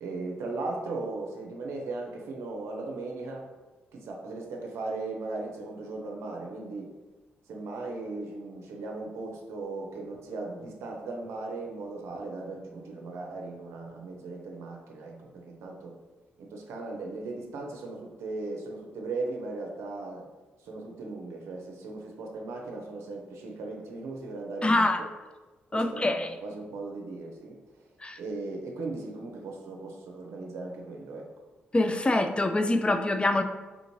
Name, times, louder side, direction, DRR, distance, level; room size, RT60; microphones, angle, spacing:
voice 1, 0.0-3.5 3.9-6.9 7.5-15.9 16.4-20.3 20.6-25.1 25.7-27.6 28.2-31.3, right 3 dB, 70° right, 0 dB, 0.6 m, -37 dB
voice 2, 24.6-25.0 25.7-26.4 28.0-28.2 31.7-33.4, left 2 dB, 20° left, 7 dB, 0.4 m, -25 dB
3.7 x 2.5 x 3.0 m, 1.2 s
hypercardioid pair, 40°, 5 cm